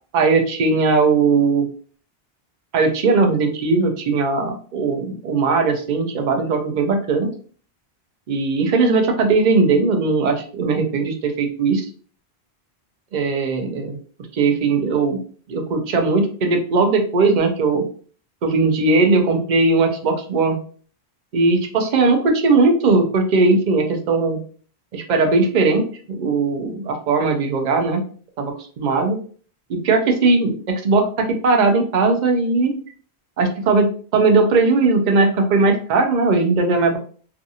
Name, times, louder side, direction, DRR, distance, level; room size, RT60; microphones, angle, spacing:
voice 1, 0.1-1.7 2.7-7.3 8.3-11.9 13.1-14.0 14.3-15.2 15.5-17.8 18.4-20.6 21.3-24.4 24.9-25.8 26.1-28.0 28.4-29.2 29.7-32.7 33.4-37.0, right 3 dB, 55° right, 5 dB, 0.6 m, -18 dB
2.5 x 2.5 x 2.6 m, 0.44 s
omnidirectional pair, 1.1 m